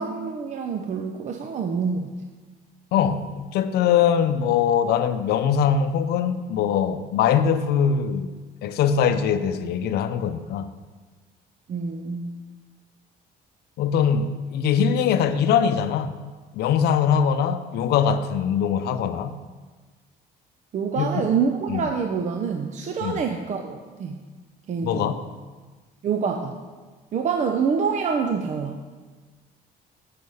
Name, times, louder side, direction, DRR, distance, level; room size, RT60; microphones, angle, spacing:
voice 1, 0.0-2.1 11.7-12.4 20.7-24.2 24.7-25.2 26.0-26.5 27.1-28.8, right 6 dB, 45° right, 4 dB, 0.6 m, -26 dB
voice 2, 2.9-8.3 8.6-10.7 13.8-16.1 16.5-19.4 21.0-21.3 21.7-21.8 23.0-23.2 24.8-25.2, left 7 dB, 75° left, 10 dB, 0.6 m, -22 dB
7.9 x 5.7 x 5.5 m, 1.4 s
cardioid pair, 110°, 17 cm